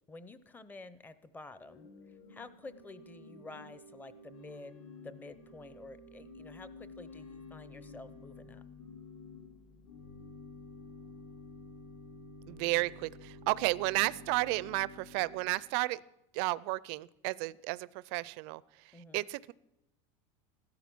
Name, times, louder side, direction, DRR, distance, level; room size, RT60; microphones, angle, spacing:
voice 1, 0.1-1.9 2.3-4.8 5.0-8.6 18.9-19.3, left 3 dB, 10° left, 14 dB, 0.7 m, -50 dB
Organ / Church bell, 1.5-15.7, left 3 dB, 70° left, 3.1 m, -51 dB
voice 2, 12.5-16.0 16.3-19.5, right 22 dB, 60° right, 20 dB, 0.5 m, -33 dB
15.5 x 12.5 x 6.1 m, 0.85 s
supercardioid pair, 155°, 15 cm